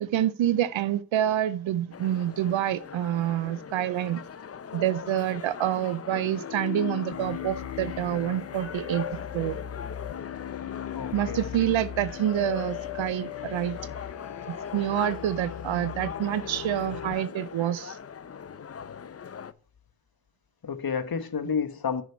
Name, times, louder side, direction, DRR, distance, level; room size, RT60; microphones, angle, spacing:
voice 1, 0.0-4.2 4.7-9.1 9.3-9.6 11.1-13.8 14.5-18.0, right 11 dB, 85° right, 0.6 m, -27 dB
sound 1, 1.9-19.5, left 7 dB, 35° left, 0.5 m, -41 dB
sound 2, 6.1-17.2, left 10 dB, 70° left, 0.8 m, -38 dB
voice 2, 10.9-11.4 20.6-22.0, left 6 dB, 50° left, 1.2 m, -30 dB
6.2 x 6.0 x 5.5 m
cardioid pair, 40°, 45 cm